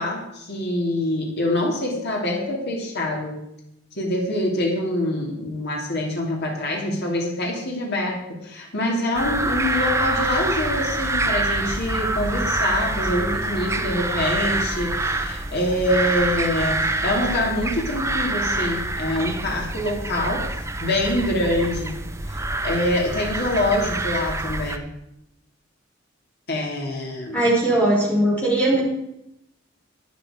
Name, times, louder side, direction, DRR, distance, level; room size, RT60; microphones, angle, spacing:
voice 1, 0.0-3.4 3.9-21.9 22.3-24.9 26.5-27.5, left 1 dB, 55° left, -1 dB, 3.0 m, -25 dB
sound 1, 9.1-24.8, right 2 dB, 15° right, 0.8 m, -26 dB
voice 2, 27.3-28.8, right 1 dB, 10° left, -4 dB, 5.4 m, -19 dB
12.0 x 10.0 x 5.1 m, 0.84 s
head